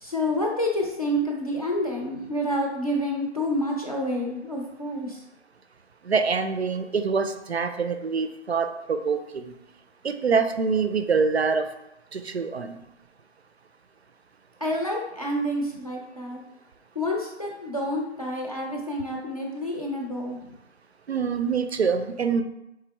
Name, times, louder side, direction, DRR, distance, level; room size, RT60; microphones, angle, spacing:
voice 1, 0.0-5.2 14.6-16.4 16.9-20.5, left 1 dB, 30° left, -1 dB, 0.6 m, -28 dB
voice 2, 6.1-9.5 10.0-11.7 12.1-12.8 21.1-22.4, right 5 dB, 65° right, 8 dB, 0.5 m, -25 dB
4.3 x 3.5 x 3.4 m, 0.87 s
hypercardioid pair, 175°, 35 cm